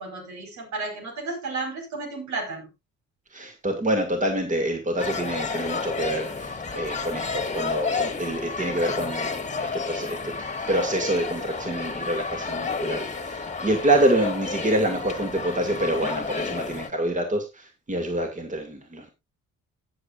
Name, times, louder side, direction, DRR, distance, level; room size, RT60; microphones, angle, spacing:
voice 1, 0.0-2.7 7.3-7.4, right 3 dB, 70° right, 4 dB, 5.1 m, -33 dB
voice 2, 3.3-9.3 9.6-10.2 10.7-19.1, right 1 dB, 25° right, 4 dB, 2.4 m, -26 dB
sound 1, 5.0-16.9, left 4 dB, 25° left, 1.8 m, -31 dB
16.5 x 7.6 x 2.5 m, 0.23 s
cardioid pair, 90°, 30 cm